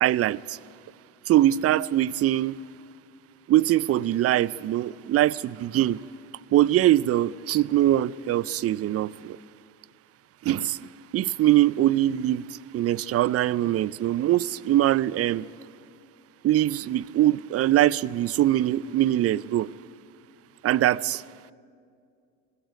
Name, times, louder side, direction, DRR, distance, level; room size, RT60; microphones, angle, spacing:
voice 1, 0.0-0.6 1.3-2.5 3.5-6.0 6.5-9.4 10.4-10.8 11.1-12.4 12.7-15.4 16.4-19.7 20.6-21.2, right 13 dB, 35° right, 0.5 m, -22 dB
19.5 x 15.0 x 9.2 m
hypercardioid pair, 65°, 40 cm